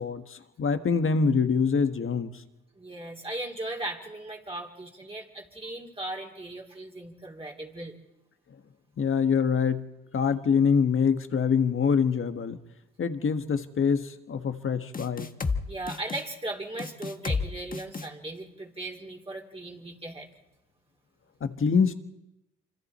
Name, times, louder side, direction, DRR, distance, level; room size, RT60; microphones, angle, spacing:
voice 1, 0.0-2.3 9.0-9.9 10.1-12.6 13.0-15.3 21.4-21.9, left 6 dB, 45° left, 9 dB, 1.6 m, -25 dB
voice 2, 2.8-7.9 15.7-20.3, right 2 dB, 20° right, -2 dB, 3.3 m, -37 dB
sound 1, 14.9-15.6 15.9-16.2 16.8-17.4 17.7-18.1, left 4 dB, 30° left, 1.5 m, -30 dB
26.0 x 25.5 x 4.4 m, 0.96 s
cardioid pair, 90°, 30 cm